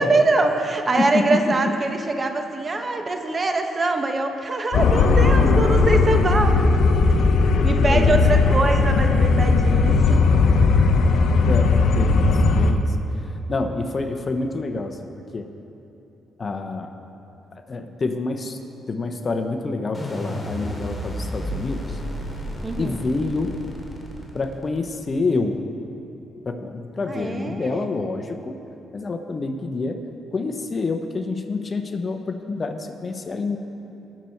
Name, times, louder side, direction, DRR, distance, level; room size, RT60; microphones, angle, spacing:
voice 1, 0.0-6.6 7.6-10.2 22.6-23.0 27.1-27.9, right 3 dB, 30° right, 5 dB, 1.0 m, -23 dB
voice 2, 1.0-1.5 5.2-5.6 7.8-8.4 11.4-13.0 13.5-15.0 15.3-15.5 16.4-16.9 17.5-18.6 18.9-22.0 22.8-23.6 24.3-25.6 26.4-28.6 28.9-30.0 30.3-33.6, left 3 dB, 35° left, 6 dB, 0.9 m, -27 dB
sound 1, 4.7-12.7, left 4 dB, 70° left, 0.8 m, -17 dB
sound 2, 19.9-25.0, equal, 10° left, 2.6 m, -32 dB
20.0 x 7.0 x 4.5 m, 2.9 s
cardioid pair, 90°, 0 cm